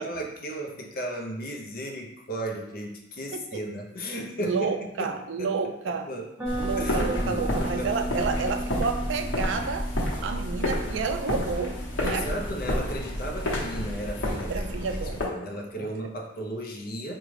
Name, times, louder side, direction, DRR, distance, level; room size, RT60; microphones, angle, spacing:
voice 1, 0.0-5.1 5.4-5.5 6.1-6.3 6.8-8.1 12.0-17.1, right 1 dB, 45° left, 1 dB, 0.6 m, -35 dB
voice 2, 3.3-3.6 4.4-6.1 6.6-9.9 10.2-12.3 14.5-15.2 15.8-15.9, right 5 dB, 70° right, 7 dB, 0.3 m, -30 dB
sound 1, 6.4-14.3, right 2 dB, 5° right, 0.8 m, -38 dB
sound 2, 6.5-15.3, left 1 dB, 80° left, 0.9 m, -30 dB
5.0 x 2.3 x 3.2 m, 0.86 s
head